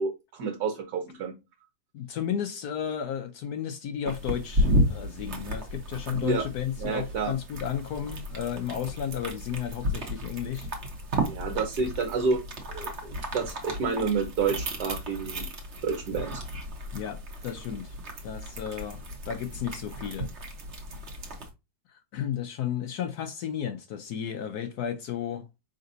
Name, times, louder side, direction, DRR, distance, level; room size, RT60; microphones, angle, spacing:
voice 1, 0.0-1.3 6.2-6.4 6.8-7.3 11.2-12.4 12.7-15.5 15.8-16.4, right 4 dB, 60° right, 1.5 m, -29 dB
voice 2, 1.9-10.7 16.9-17.9 18.2-20.3 21.9-25.5, left 9 dB, 70° left, 1.0 m, -33 dB
sound 1, 4.1-21.5, equal, 40° right, 1.1 m, -33 dB
5.2 x 3.9 x 2.6 m
omnidirectional pair, 2.1 m